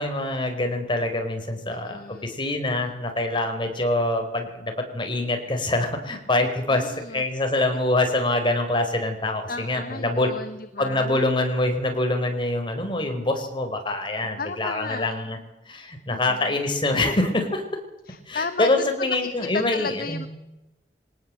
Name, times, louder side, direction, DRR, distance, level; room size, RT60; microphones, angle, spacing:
voice 1, 0.0-10.3 10.8-15.4 15.7-17.6 18.3-20.2, left 2 dB, 30° left, 5 dB, 4.9 m, -25 dB
voice 2, 1.7-2.3 6.4-7.2 9.5-11.2 14.4-15.1 16.1-16.6 18.0-20.3, left 4 dB, 55° left, 10 dB, 1.2 m, -34 dB
23.5 x 18.5 x 7.8 m, 0.94 s
head